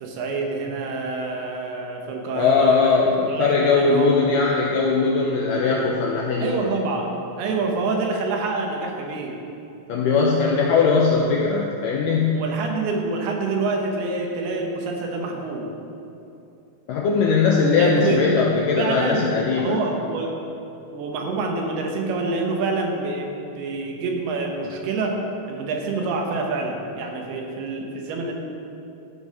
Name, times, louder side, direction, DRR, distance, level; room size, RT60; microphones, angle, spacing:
voice 1, 0.0-4.2 6.4-9.4 12.3-15.7 17.8-18.3 18.8-19.3 19.6-20.3 20.9-25.2 25.5-28.3, right 3 dB, 80° right, 1 dB, 3.0 m, -27 dB
voice 2, 2.3-6.7 9.9-12.4 16.9-19.8, left 4 dB, 85° left, -2 dB, 1.9 m, -20 dB
14.0 x 5.4 x 5.3 m, 2.8 s
omnidirectional pair, 4.6 m